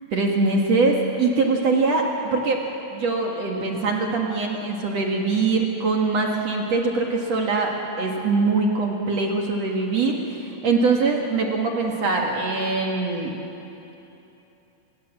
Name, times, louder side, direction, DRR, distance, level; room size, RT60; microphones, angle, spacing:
voice 1, 0.1-2.7 2.9-13.4, right 3 dB, 55° right, 0 dB, 2.0 m, -23 dB
26.5 x 21.0 x 7.5 m, 3.0 s
omnidirectional pair, 5.4 m